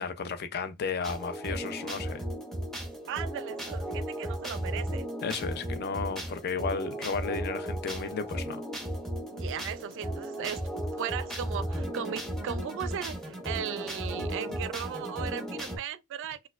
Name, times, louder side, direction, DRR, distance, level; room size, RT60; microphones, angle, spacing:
voice 1, 0.0-2.2 5.2-8.6, left 5 dB, 45° left, 0.4 m, -33 dB
sound 1, 1.0-15.8, right 1 dB, ahead, 0.7 m, -35 dB
voice 2, 3.1-5.1 9.3-10.6 10.9-16.5, right 8 dB, 55° right, 0.3 m, -37 dB
4.3 x 2.2 x 2.4 m
head